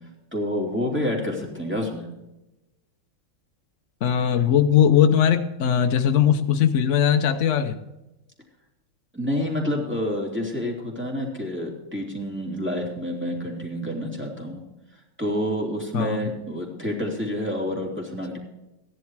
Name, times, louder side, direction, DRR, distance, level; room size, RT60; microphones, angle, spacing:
voice 1, 0.3-2.1 9.1-14.6 15.2-18.4, left 1 dB, 5° right, -2 dB, 2.6 m, -28 dB
voice 2, 4.0-7.8 15.9-16.3, left 9 dB, 85° left, 7 dB, 0.6 m, -19 dB
15.0 x 10.5 x 4.7 m, 0.97 s
omnidirectional pair, 2.4 m